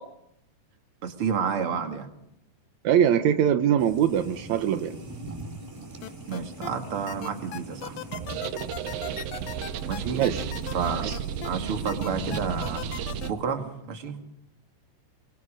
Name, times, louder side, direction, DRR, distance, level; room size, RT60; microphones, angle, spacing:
voice 1, 1.0-2.1 6.3-8.0 9.9-10.2 10.7-12.8 13.2-14.2, right 6 dB, 40° right, 5 dB, 2.3 m, -30 dB
voice 2, 2.8-5.0 10.1-10.5, right 9 dB, 85° right, 9 dB, 1.6 m, -22 dB
sound 1, 3.8-13.3, right 1 dB, 10° right, 6.1 m, -41 dB
sound 2, 6.0-6.7 7.1-11.5 11.9-13.3, left 10 dB, 75° left, 1.5 m, -38 dB
sound 3, 8.1-13.3, right 10 dB, 70° right, 2.5 m, -34 dB
28.5 x 23.5 x 5.1 m, 0.79 s
omnidirectional pair, 4.7 m